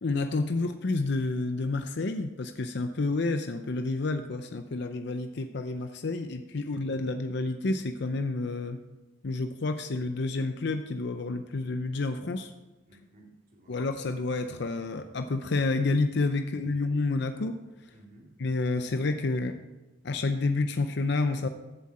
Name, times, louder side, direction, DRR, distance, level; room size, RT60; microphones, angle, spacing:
voice 1, 0.0-8.8 9.2-12.5 13.7-17.6 18.4-19.5 20.0-21.5, left 3 dB, 55° left, 7 dB, 0.6 m, -29 dB
voice 2, 12.9-13.8 16.5-17.0 17.9-18.3, right 1 dB, 40° right, -1 dB, 2.6 m, -56 dB
15.0 x 7.6 x 4.3 m, 1.1 s
head